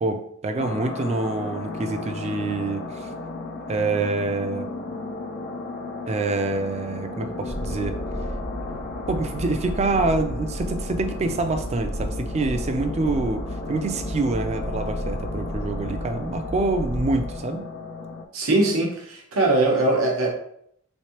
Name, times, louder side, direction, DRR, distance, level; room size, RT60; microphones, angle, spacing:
voice 1, 0.0-3.1 3.7-4.7 6.1-8.0 9.1-13.4 13.7-17.7, right 3 dB, 30° right, 7 dB, 0.3 m, -26 dB
sound 1, 0.6-18.2, left 3 dB, 55° left, 0.4 m, -35 dB
sound 2, 7.4-17.3, equal, 80° left, 0.8 m, -33 dB
voice 2, 18.3-20.3, right 2 dB, 85° right, -1 dB, 0.9 m, -21 dB
3.5 x 3.2 x 2.9 m, 0.70 s
head